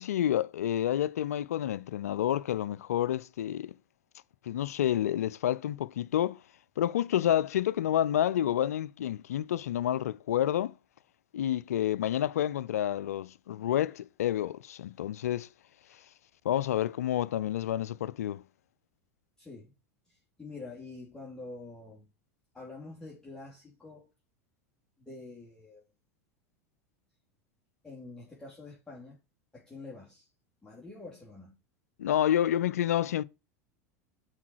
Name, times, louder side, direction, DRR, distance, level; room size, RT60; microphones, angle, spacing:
voice 1, 0.0-3.7 4.5-6.4 6.8-10.7 11.3-15.5 16.4-18.4 32.0-33.2, left 11 dB, 80° left, 0.4 m, -29 dB
voice 2, 19.4-19.7 20.1-22.1 22.5-24.1 25.0-25.8 27.8-29.2 29.5-30.3 30.6-31.5, left 3 dB, 10° left, 3.0 m, -46 dB
7.2 x 4.8 x 4.7 m
hypercardioid pair, 90°, 8 cm